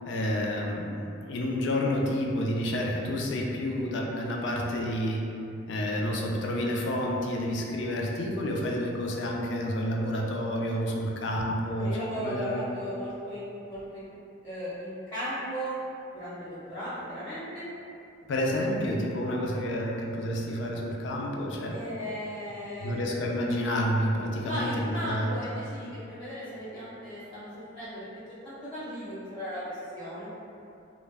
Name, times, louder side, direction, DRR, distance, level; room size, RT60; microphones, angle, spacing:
voice 1, 0.1-5.3 5.7-12.6 18.3-21.8 22.8-25.3, equal, 70° left, -1 dB, 0.4 m, -29 dB
voice 2, 11.8-14.1 14.4-15.8 16.1-17.7 21.7-23.0 24.4-28.1 28.4-30.4, equal, 10° left, -12 dB, 0.6 m, -36 dB
2.2 x 2.0 x 3.3 m, 2.7 s
head